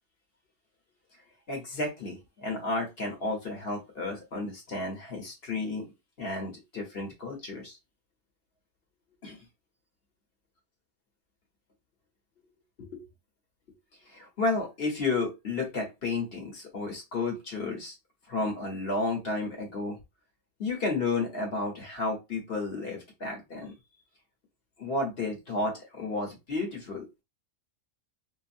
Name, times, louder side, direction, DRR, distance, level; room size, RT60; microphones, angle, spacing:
voice 1, 1.5-5.9 6.2-7.8 9.2-9.4 12.8-13.0 14.1-17.9 18.3-20.0 20.6-23.7 24.8-27.2, left 3 dB, 50° left, 0 dB, 1.2 m, -32 dB
2.8 x 2.5 x 2.5 m, 0.24 s
omnidirectional pair, 1.3 m